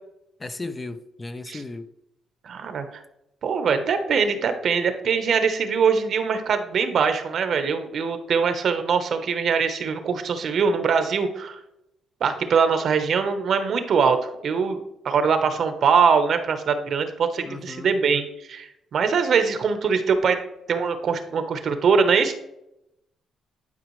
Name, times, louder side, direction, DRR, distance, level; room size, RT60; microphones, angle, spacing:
voice 1, 0.4-1.8 17.4-18.0, left 2 dB, 20° left, 9 dB, 0.6 m, -35 dB
voice 2, 2.4-2.9 3.4-11.6 12.2-18.2 18.5-20.4 20.7-22.3, right 6 dB, 60° right, 8 dB, 1.0 m, -22 dB
11.0 x 4.9 x 3.2 m, 0.83 s
cardioid pair, 90°, 0 cm